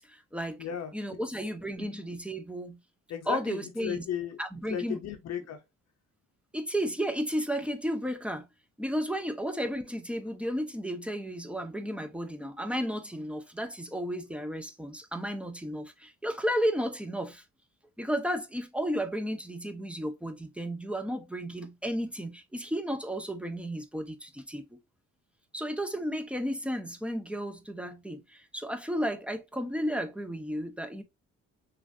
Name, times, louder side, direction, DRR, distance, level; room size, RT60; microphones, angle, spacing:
voice 1, 0.0-0.6 0.9-2.8 3.3-4.0 4.4-5.0 6.5-8.5 8.8-17.4 18.0-24.8 25.5-31.0, equal, 5° right, 0.4 m, -33 dB
voice 2, 0.6-0.9 3.1-4.4 4.7-5.6, left 9 dB, 60° left, 0.6 m, -35 dB
3.1 x 2.4 x 2.5 m
cardioid pair, 90°, 30 cm